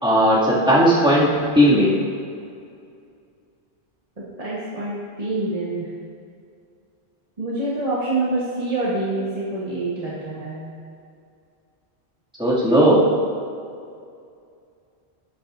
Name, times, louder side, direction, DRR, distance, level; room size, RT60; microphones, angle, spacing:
voice 1, 0.0-1.3 1.5-2.0 12.4-13.0, equal, 5° right, -8 dB, 2.2 m, -16 dB
voice 2, 4.2-5.9 7.4-10.7, right 2 dB, 35° right, -8 dB, 1.4 m, -26 dB
12.0 x 8.8 x 2.6 m, 2.4 s
omnidirectional pair, 1.1 m